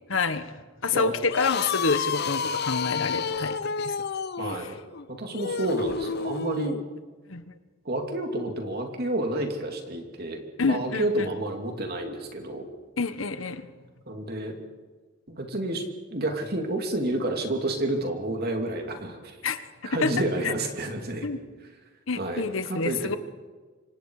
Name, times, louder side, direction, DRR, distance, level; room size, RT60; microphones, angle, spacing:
voice 1, 0.1-0.5 0.8-4.0 4.4-4.7 7.3-7.4 10.6-11.3 13.0-13.6 19.4-20.1 20.4-20.5 21.2-21.4 22.1-23.2, left 4 dB, 70° left, 11 dB, 1.2 m, -28 dB
sound 1, 1.2-6.8, left 5 dB, 50° left, 0.7 m, -30 dB
voice 2, 4.3-4.8 5.1-6.8 7.8-12.7 14.1-14.6 15.3-15.8 16.1-19.4 19.8-21.3 22.2-23.2, right 1 dB, 50° right, 3 dB, 3.0 m, -30 dB
26.5 x 24.5 x 4.9 m, 1.4 s
head